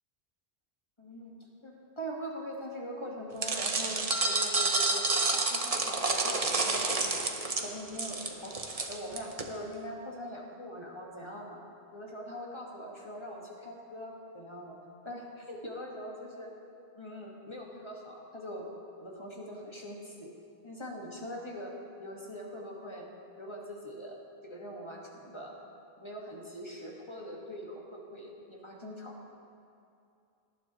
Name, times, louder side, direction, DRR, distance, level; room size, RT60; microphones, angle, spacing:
voice 1, 1.0-1.3 1.6-8.5 8.9-11.6 11.9-14.8 15.0-16.5 17.0-18.7 19.0-20.3 20.6-23.1 23.4-25.5 26.0-29.2, equal, 25° left, -2 dB, 1.6 m, -42 dB
sound 1, 3.4-9.4, right 3 dB, 35° right, 0.9 m, -29 dB
18.5 x 12.0 x 3.0 m, 2.6 s
omnidirectional pair, 1.1 m